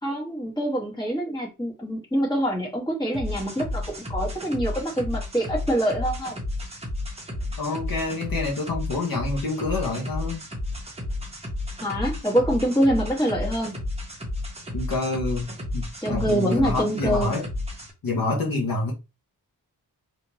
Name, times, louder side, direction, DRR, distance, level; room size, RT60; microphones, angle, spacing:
voice 1, 0.0-6.4 11.8-13.8 16.0-17.4, right 1 dB, 10° left, 1.6 m, -25 dB
sound 1, 3.1-17.9, left 2 dB, 15° right, 1.1 m, -32 dB
voice 2, 7.6-10.4 14.7-17.5 18.0-18.9, left 3 dB, 60° left, 1.1 m, -27 dB
3.4 x 2.8 x 2.9 m
wide cardioid pair, 150°, 39 cm